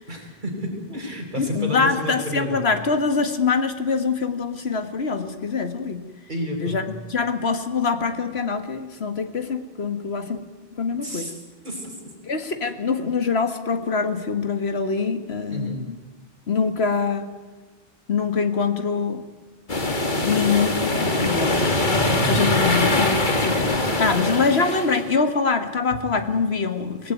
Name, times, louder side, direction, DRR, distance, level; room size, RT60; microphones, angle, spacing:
voice 1, 0.1-2.6 6.3-6.8 11.0-11.3 11.6-12.1 15.5-15.8 22.5-22.7, equal, 50° right, 1 dB, 5.3 m, -31 dB
voice 2, 1.4-6.0 6.6-6.8 7.1-10.4 10.8-11.3 12.3-16.0 16.5-17.3 18.1-19.2 20.2-21.9 22.2-27.1, left 5 dB, 85° left, 9 dB, 2.0 m, -24 dB
sound 1, 19.7-25.1, left 2 dB, 50° left, 2.3 m, -22 dB
25.0 x 18.0 x 9.4 m, 1.2 s
omnidirectional pair, 1.0 m